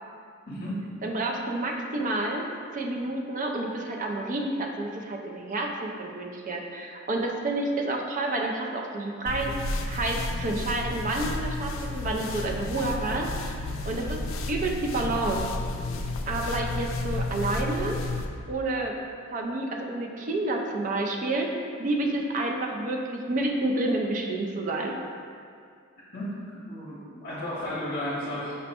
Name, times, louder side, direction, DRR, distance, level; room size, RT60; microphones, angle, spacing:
voice 1, 0.5-0.8 26.1-26.4 26.7-28.6, left 1 dB, 50° left, -9 dB, 0.8 m, -33 dB
voice 2, 1.0-2.5 2.7-9.5 9.9-13.6 13.8-14.2 14.5-15.5 16.3-18.0 18.5-19.0 19.3-21.5 21.8-25.0, right 2 dB, 40° right, 1 dB, 0.4 m, -29 dB
sound 1, 9.3-18.3, left 2 dB, 75° left, 0.3 m, -32 dB
5.3 x 2.1 x 4.2 m, 2.3 s
head